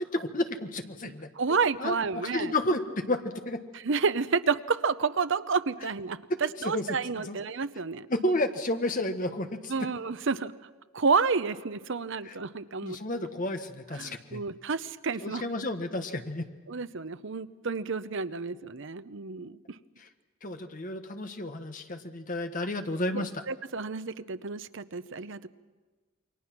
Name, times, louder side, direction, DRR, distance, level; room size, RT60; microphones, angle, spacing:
voice 1, 0.0-3.6 6.3-7.4 8.1-9.9 12.2-12.3 12.8-14.4 15.2-16.5 20.0-20.1 20.4-23.4, left 1 dB, 40° left, 7 dB, 1.4 m, -32 dB
voice 2, 1.4-2.5 3.8-6.2 6.6-8.1 9.7-10.5 10.9-13.3 14.0-15.4 16.7-19.8 23.1-25.5, right 5 dB, 60° right, 13 dB, 0.7 m, -30 dB
28.5 x 22.5 x 6.1 m, 1.3 s
head